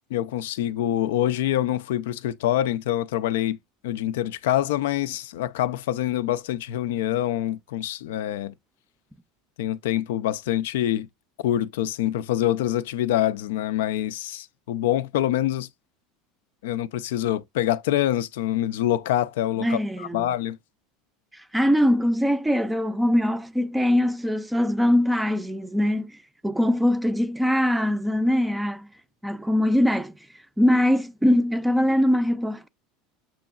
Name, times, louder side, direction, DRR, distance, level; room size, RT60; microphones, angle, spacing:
voice 1, 0.1-3.6 3.8-8.5 9.6-11.1 11.4-15.7 16.6-20.6, left 12 dB, 85° left, 0.4 m, -25 dB
voice 2, 19.6-20.3 21.3-26.2 26.4-28.9 29.2-30.1 30.6-32.7, left 1 dB, 5° right, 0.4 m, -22 dB
6.9 x 2.9 x 2.4 m
supercardioid pair, 115°, 0 cm